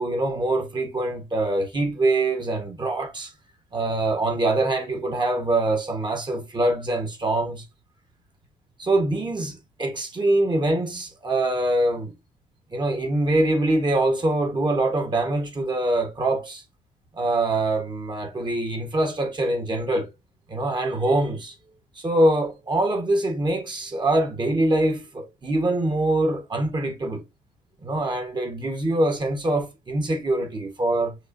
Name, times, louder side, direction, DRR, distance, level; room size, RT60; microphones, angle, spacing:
voice 1, 0.0-3.3 3.7-7.6 8.8-12.1 12.7-16.6 17.2-20.1 20.5-21.5 21.9-27.2 27.8-31.2, right 2 dB, 30° right, 1.4 m, -24 dB
6.4 x 2.8 x 2.7 m
cardioid pair, 85°, 15 cm